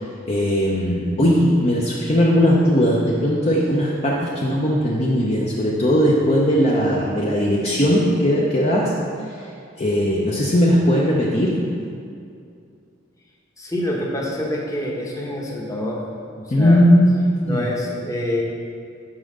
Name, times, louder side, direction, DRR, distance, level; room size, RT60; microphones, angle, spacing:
voice 1, 0.3-8.9 9.8-11.6 16.5-17.7, equal, 35° left, -4 dB, 0.7 m, -18 dB
voice 2, 13.6-16.1 16.4-16.8 17.4-18.4, left 1 dB, 15° left, -2 dB, 1.0 m, -26 dB
5.7 x 4.8 x 6.5 m, 2.4 s
head